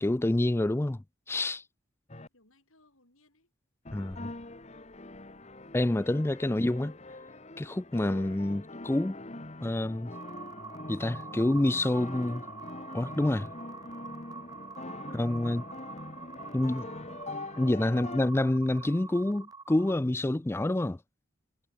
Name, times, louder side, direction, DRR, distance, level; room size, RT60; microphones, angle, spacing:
voice 1, 0.0-1.6 3.9-4.3 5.7-6.9 7.6-9.2 9.6-10.1 10.9-12.4 12.9-13.5 15.1-15.6 16.5-16.9 17.6-21.0, left 1 dB, 10° left, 0.3 m, -28 dB
sound 1, 2.1-2.3 3.8-18.2, left 2 dB, 30° left, 1.5 m, -43 dB
voice 2, 2.2-3.5 15.0-15.6 17.8-18.4, left 2 dB, 70° left, 7.6 m, -66 dB
sound 2, 10.1-20.0, right 4 dB, 15° right, 0.7 m, -46 dB
head